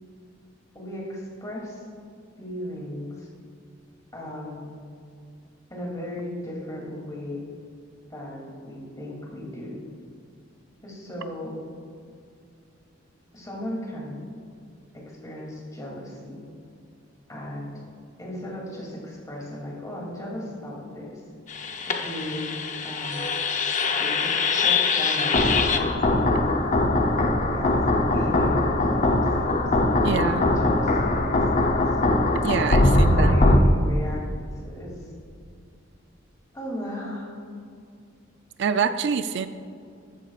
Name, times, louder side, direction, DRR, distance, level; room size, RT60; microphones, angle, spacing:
voice 1, 0.7-1.9 2.4-3.3 4.1-4.8 5.7-7.4 8.1-9.8 10.8-11.6 13.3-14.3 14.9-16.4 17.3-17.8 18.2-21.2 21.9-22.6 22.8-23.3 24.0-26.0 27.4-29.6 30.1-31.9 32.8-34.2 34.6-35.1 36.5-37.4, left 1 dB, 20° left, -3 dB, 2.8 m, -36 dB
sound 1, 21.5-33.6, left 2 dB, 40° left, 0.7 m, -22 dB
voice 2, 30.0-30.5 32.4-33.4 38.6-39.5, right 6 dB, 65° right, 10 dB, 0.4 m, -25 dB
13.0 x 13.0 x 2.5 m, 2.3 s
head